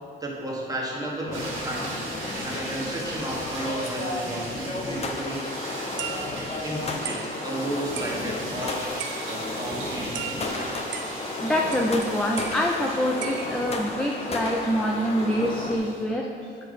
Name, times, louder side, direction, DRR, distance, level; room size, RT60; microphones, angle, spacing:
voice 1, 0.2-2.0 2.4-5.6 6.6-8.9 9.2-10.8, right 1 dB, 20° right, -3 dB, 1.6 m, -33 dB
sound 1, 1.3-15.8, left 2 dB, 30° left, 0.8 m, -33 dB
sound 2, 1.3-16.0, right 2 dB, 85° right, 1.6 m, -39 dB
sound 3, 6.0-6.7 7.0-7.4 7.9-8.6 9.0-9.6 9.8-11.4 11.7-12.1 12.4-13.8, right 7 dB, 65° right, 0.7 m, -38 dB
voice 2, 11.4-16.3, equal, 5° left, 0 dB, 0.5 m, -25 dB
7.5 x 4.3 x 4.9 m, 2.4 s
cardioid pair, 90°, 20 cm